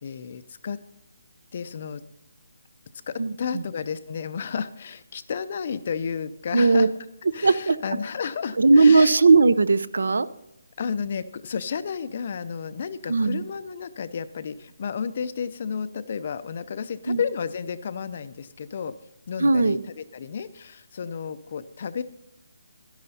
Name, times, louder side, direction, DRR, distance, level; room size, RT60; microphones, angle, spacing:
voice 1, 0.0-0.8 1.5-2.0 3.1-6.9 7.3-9.2 10.8-18.9 19.3-22.0, left 6 dB, 30° left, 14 dB, 0.5 m, -32 dB
voice 2, 3.2-3.6 6.5-6.9 7.3-7.8 8.6-10.3 13.1-13.4 17.1-17.2 19.4-19.8, right 3 dB, 70° right, 16 dB, 0.6 m, -18 dB
12.0 x 10.5 x 4.1 m, 0.83 s
hypercardioid pair, 175°, 0 cm